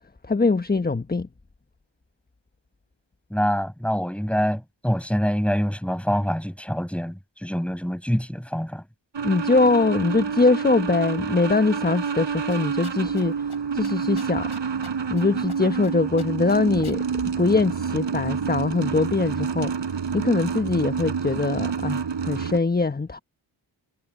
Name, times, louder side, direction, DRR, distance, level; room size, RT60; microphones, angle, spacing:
voice 1, 0.3-1.3 9.2-13.5 13.7-14.5 15.1-19.7 20.1-23.2, left 3 dB, 20° left, 1.2 m, -22 dB
voice 2, 3.3-8.8, equal, ahead, 6.9 m, -25 dB
sound 1, 9.1-22.6, right 6 dB, 60° right, 5.6 m, -28 dB
sound 2, 12.5-13.2 13.5-13.6 13.8-15.2 15.5-15.9 16.2-17.0, left 5 dB, 50° left, 6.6 m, -44 dB
supercardioid pair, 45°, 48 cm